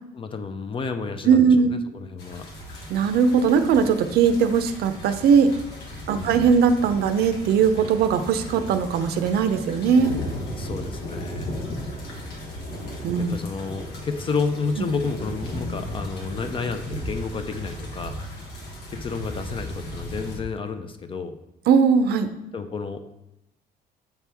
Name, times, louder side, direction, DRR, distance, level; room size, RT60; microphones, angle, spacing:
voice 1, 0.1-2.5 6.1-6.5 10.6-11.7 13.1-18.2 18.9-21.3 22.5-23.0, left 4 dB, 30° left, 8 dB, 0.5 m, -31 dB
voice 2, 1.3-1.7 2.9-5.5 6.1-10.2 13.0-13.4 21.7-22.3, right 6 dB, 70° right, 10 dB, 0.5 m, -19 dB
sound 1, 2.2-20.4, equal, 85° left, 1.4 m, -36 dB
7.1 x 4.5 x 3.4 m, 0.88 s
cardioid pair, 110°, 17 cm